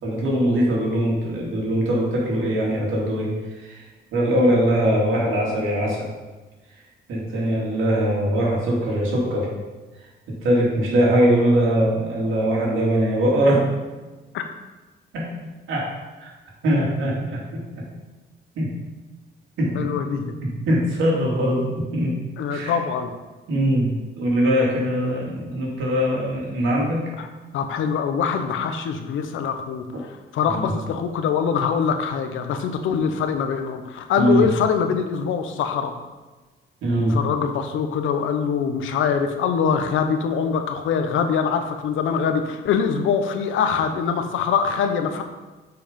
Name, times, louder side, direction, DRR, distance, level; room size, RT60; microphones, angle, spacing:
voice 1, 0.0-6.1 7.1-9.5 10.3-13.7 15.1-15.3 15.7-15.9 16.2-16.3 16.6-17.9 18.6-18.7 19.6-19.9 20.7-22.2 22.5-22.8 23.5-27.0 30.5-30.7 34.2-34.4 36.8-37.2, right 1 dB, 80° right, -4 dB, 2.7 m, -21 dB
voice 2, 19.7-20.4 22.4-23.1 27.2-27.3 27.5-35.9 37.1-45.2, left 6 dB, 80° left, 7 dB, 0.9 m, -23 dB
7.7 x 4.9 x 5.2 m, 1.2 s
cardioid pair, 90°, 20 cm